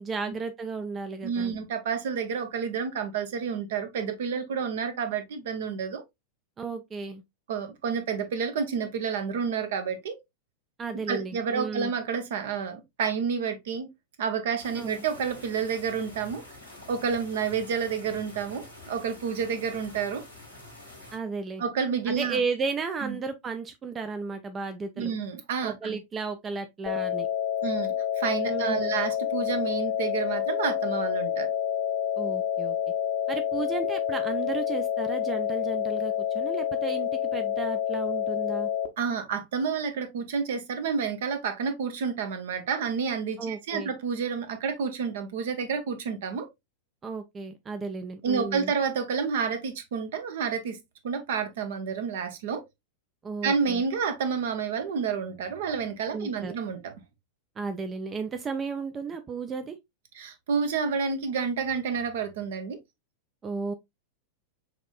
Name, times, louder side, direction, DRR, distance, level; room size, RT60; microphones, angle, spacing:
voice 1, 0.0-1.5 6.6-7.2 10.8-11.9 14.8-15.1 21.1-21.6 22.1-25.1 25.6-27.3 28.5-28.9 32.2-32.8 33.3-38.7 43.4-43.9 47.0-48.7 53.2-53.8 56.1-56.5 57.6-59.8 63.4-63.7, right 4 dB, 20° right, 0.4 m, -34 dB
voice 2, 1.2-6.0 7.5-10.2 11.1-13.9 14.2-16.4 16.9-20.2 21.6-22.4 23.0-23.2 25.0-26.0 27.6-31.5 39.0-46.5 48.2-50.8 51.0-52.6 53.4-56.9 60.1-62.8, right 6 dB, 55° right, 0.7 m, -29 dB
sound 1, 14.6-21.2, left 1 dB, 85° right, 1.8 m, -47 dB
sound 2, 26.9-38.9, left 10 dB, 45° left, 0.6 m, -28 dB
5.8 x 2.6 x 2.3 m
figure-of-eight pair, 90°, 0 cm